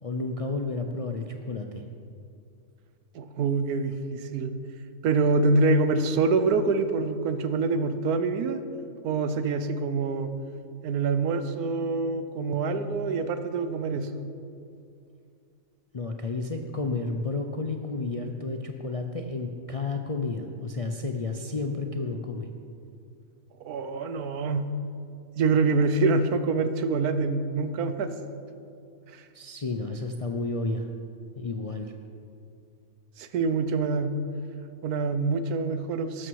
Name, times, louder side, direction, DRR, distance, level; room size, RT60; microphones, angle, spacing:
voice 1, 0.0-1.9 15.9-22.5 29.3-30.9 31.4-31.9, left 3 dB, 50° left, 3 dB, 0.4 m, -31 dB
voice 2, 3.1-4.5 5.0-8.6 9.0-10.3 10.8-14.2 23.6-24.7 25.4-28.1 29.1-29.2 33.2-34.1 34.8-36.3, right 3 dB, 85° right, 10 dB, 1.3 m, -25 dB
12.5 x 12.5 x 4.7 m, 2.4 s
omnidirectional pair, 1.6 m